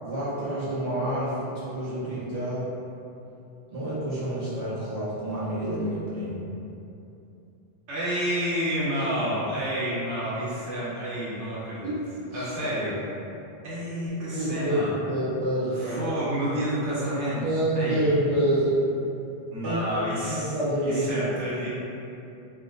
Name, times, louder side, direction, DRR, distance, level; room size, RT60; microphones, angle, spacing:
voice 1, 0.0-2.7 3.7-6.4 11.8-12.0 12.3-12.5 14.3-14.8 15.1-16.0 17.4-18.7 19.6-19.8 20.2-21.3, right 1 dB, 40° right, -12 dB, 1.2 m, -28 dB
voice 2, 7.9-12.0 12.3-13.0 13.6-14.9 15.7-17.4 17.7-18.2 19.5-20.5 20.8-21.7, equal, 80° right, -9 dB, 1.1 m, -29 dB
3.6 x 2.6 x 2.5 m, 2.8 s
omnidirectional pair, 1.2 m